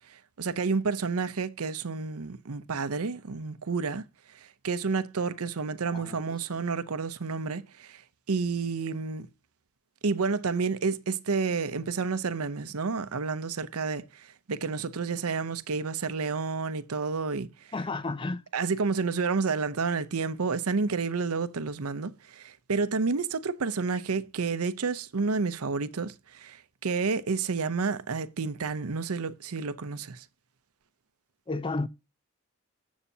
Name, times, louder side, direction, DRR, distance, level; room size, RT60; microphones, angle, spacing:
voice 1, 0.1-4.0 4.6-8.0 8.3-9.3 10.0-17.5 18.5-30.2, right 4 dB, 80° right, 0.7 m, -30 dB
voice 2, 17.7-18.4 31.5-31.9, left 3 dB, 20° left, 0.4 m, -31 dB
12.5 x 7.2 x 2.8 m
head